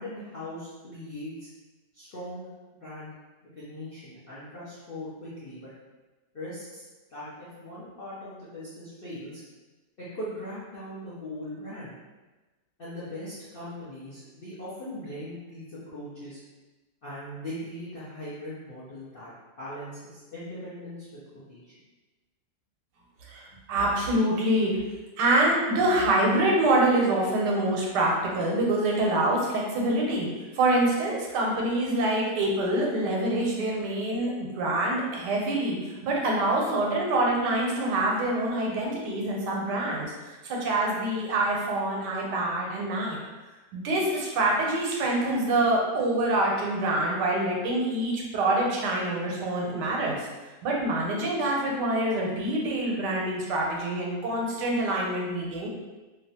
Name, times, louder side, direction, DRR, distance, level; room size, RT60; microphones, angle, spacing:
voice 1, 0.0-1.5 1.9-2.5 2.7-3.1 3.4-5.7 6.3-6.8 7.1-9.4 10.1-11.9 12.8-16.4 17.0-21.7 23.5-23.6, left 1 dB, 65° left, -11 dB, 0.5 m, -40 dB
voice 2, 23.3-24.8 25.2-40.1 40.4-43.2 43.7-50.3 50.6-55.7, right 1 dB, 85° right, -1 dB, 1.2 m, -26 dB
2.9 x 2.2 x 2.7 m, 1.2 s
omnidirectional pair, 1.8 m